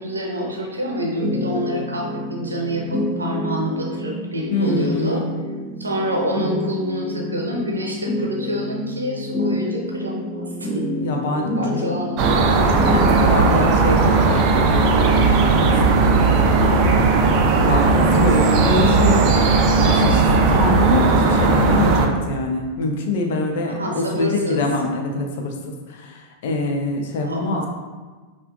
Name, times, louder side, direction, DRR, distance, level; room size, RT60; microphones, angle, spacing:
voice 1, 0.0-5.2 5.8-11.0 11.5-12.6 23.7-24.6 27.2-27.7, equal, 80° right, -1 dB, 0.6 m, -27 dB
sound 1, 1.0-13.3, left 1 dB, ahead, 1.4 m, -28 dB
voice 2, 4.5-5.3 11.0-11.9 12.5-16.2 17.5-19.2 19.7-20.2 20.5-27.7, left 2 dB, 55° left, 2 dB, 0.6 m, -24 dB
sound 2, 12.2-22.1, right 3 dB, 40° right, 0.4 m, -16 dB
5.6 x 2.5 x 2.3 m, 1.4 s
figure-of-eight pair, 90°, 0 cm